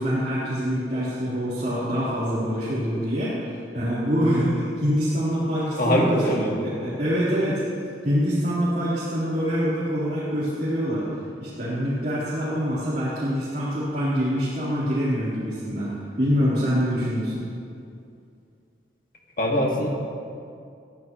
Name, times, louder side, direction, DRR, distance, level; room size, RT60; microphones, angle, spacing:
voice 1, 0.0-6.2 6.5-7.6 8.0-11.0 11.4-17.4, equal, 45° right, -11 dB, 3.9 m, -25 dB
voice 2, 5.8-7.0 19.4-19.9, equal, 50° left, -1 dB, 2.2 m, -23 dB
21.5 x 14.0 x 3.2 m, 2.4 s
head